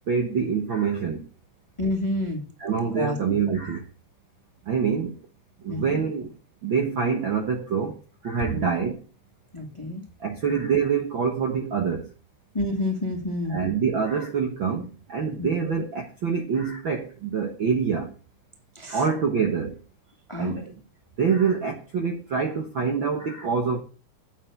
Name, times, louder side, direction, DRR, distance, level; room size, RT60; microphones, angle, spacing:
voice 1, 0.1-1.3 2.6-3.8 4.6-5.2 5.6-6.3 6.6-9.0 10.2-12.1 13.5-18.1 18.9-19.8 20.4-20.7 21.2-23.8, right 6 dB, 50° right, 1.5 m, -26 dB
voice 2, 1.8-2.4 2.9-3.2 3.5-3.6 5.7-6.0 8.5-8.7 9.5-10.0 12.5-13.6 15.4-15.5 18.7-19.0 20.3-20.6, left 1 dB, 10° left, 1.5 m, -28 dB
8.4 x 8.2 x 8.0 m
omnidirectional pair, 3.7 m